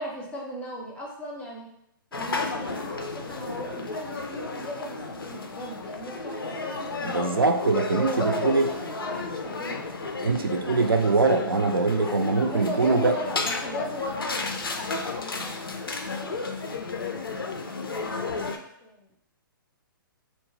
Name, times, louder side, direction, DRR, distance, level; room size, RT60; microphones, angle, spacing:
voice 1, 0.0-1.7 2.1-7.5 8.0-9.8 12.5-15.0 15.3-15.8 16.1-17.0 17.5-18.2 18.8-19.1, equal, 10° left, -2 dB, 0.5 m, -37 dB
sound 1, 2.1-18.6, left 3 dB, 85° left, 0.4 m, -33 dB
voice 2, 7.0-8.7 10.2-13.2, right 3 dB, 90° right, 6 dB, 0.4 m, -23 dB
2.8 x 2.0 x 3.2 m, 0.77 s
figure-of-eight pair, 125°, 12 cm